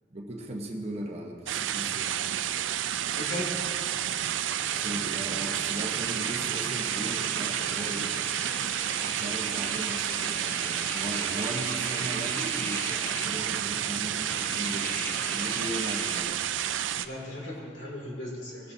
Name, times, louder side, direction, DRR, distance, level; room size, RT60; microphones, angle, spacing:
voice 1, 0.1-2.1 4.7-8.1 9.0-16.3, right 1 dB, 35° right, 0 dB, 1.1 m, -38 dB
sound 1, 1.5-17.1, right 10 dB, 85° right, 0.4 m, -30 dB
voice 2, 3.1-3.5 17.0-18.7, left 1 dB, 75° left, -4 dB, 2.9 m, -37 dB
sound 2, 4.6-16.2, left 1 dB, 10° left, 0.6 m, -40 dB
18.5 x 9.6 x 2.8 m, 2.5 s
head